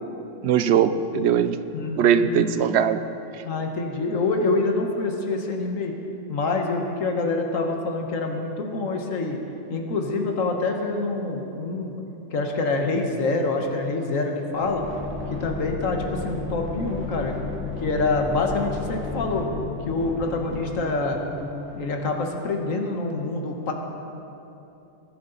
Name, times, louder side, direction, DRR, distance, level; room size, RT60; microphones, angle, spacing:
voice 1, 0.4-1.6 2.0-3.0, right 8 dB, 65° right, 12 dB, 0.7 m, -20 dB
voice 2, 1.7-2.7 3.4-5.9 6.3-9.4 9.7-11.9 12.3-14.8 15.4-17.3 17.8-19.5 19.9-21.2 21.7-23.7, left 3 dB, 85° left, 2 dB, 1.6 m, -26 dB
sound 1, 13.8-22.4, left 3 dB, 10° right, 2.0 m, -34 dB
20.5 x 9.6 x 4.0 m, 2.9 s
omnidirectional pair, 1.3 m